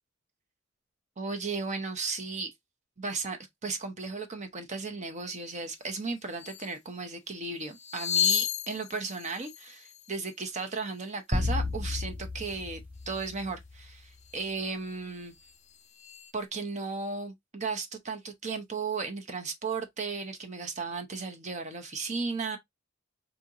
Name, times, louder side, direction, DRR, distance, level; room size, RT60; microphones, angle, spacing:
voice 1, 1.2-2.5 3.0-15.3 16.3-22.6, right 4 dB, 35° right, 0.7 m, -35 dB
sound 1, 5.9-6.0 6.3-6.8 7.6-10.8 13.0-13.4 14.1-14.5 14.8-16.3, left 11 dB, 35° left, 0.4 m, -34 dB
sound 2, 11.3-13.8, left 2 dB, 10° right, 0.9 m, -32 dB
4.4 x 2.7 x 2.4 m
head